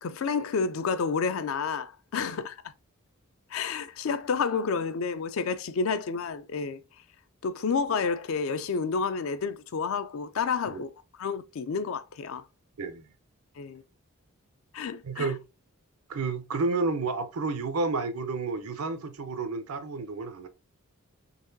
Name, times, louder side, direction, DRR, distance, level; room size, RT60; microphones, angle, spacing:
voice 1, 0.0-2.6 3.5-6.8 7.4-10.9 11.2-12.4 13.6-13.8 14.7-15.3, left 5 dB, 65° left, 0.4 m, -30 dB
voice 2, 15.0-15.4 16.1-20.5, right 3 dB, 80° right, 0.6 m, -31 dB
4.0 x 2.9 x 2.6 m
head